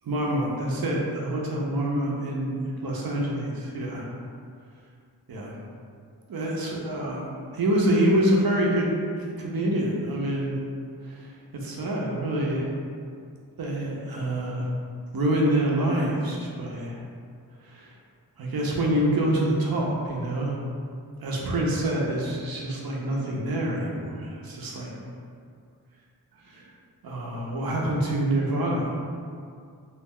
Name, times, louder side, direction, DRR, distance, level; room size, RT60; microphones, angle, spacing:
voice 1, 0.0-4.1 5.3-5.6 6.3-8.9 9.4-10.6 11.0-11.3 11.5-12.7 13.6-14.7 15.1-17.0 17.6-17.9 18.4-20.6 21.2-24.9 26.4-26.7 27.0-28.9, right 1 dB, 60° right, -2 dB, 0.6 m, -26 dB
2.4 x 2.1 x 3.5 m, 2.3 s
wide cardioid pair, 60°, 40 cm